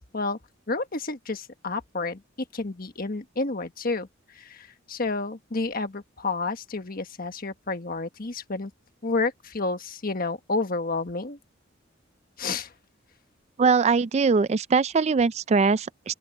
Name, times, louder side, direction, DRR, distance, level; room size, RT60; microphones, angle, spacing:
voice 1, 0.7-2.2 2.5-4.1 4.3-8.7 9.0-11.4 12.4-12.7, left 3 dB, 45° left, 1.4 m, -30 dB
voice 2, 13.6-16.1, right 5 dB, 35° right, 0.3 m, -21 dB
open air
head